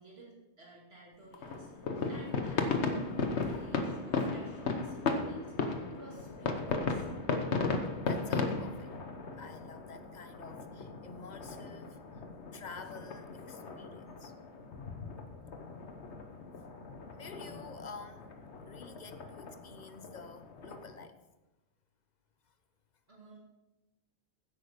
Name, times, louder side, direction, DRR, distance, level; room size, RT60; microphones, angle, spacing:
voice 1, 0.0-7.1 23.1-23.4, right 2 dB, 65° right, -4 dB, 2.8 m, -53 dB
sound 1, 1.3-21.1, left 4 dB, 85° left, 1.3 m, -36 dB
voice 2, 8.0-8.9 9.4-12.2 12.5-14.3 17.1-18.3 18.7-21.2, left 4 dB, 45° left, 9 dB, 0.9 m, -49 dB
15.0 x 8.4 x 5.1 m, 1.0 s
omnidirectional pair, 1.1 m